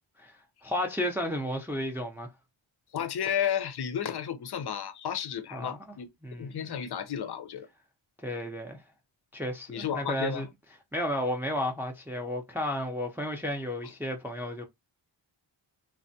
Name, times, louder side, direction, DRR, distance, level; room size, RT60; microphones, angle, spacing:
voice 1, 0.2-2.3 5.5-5.8 6.2-6.8 8.2-8.8 9.3-10.5 10.9-14.6, left 1 dB, 5° right, 0.5 m, -33 dB
voice 2, 2.9-6.1 6.4-7.7 9.7-10.5, left 9 dB, 50° left, 0.5 m, -32 dB
3.3 x 2.1 x 2.6 m
wide cardioid pair, 70°, 50 cm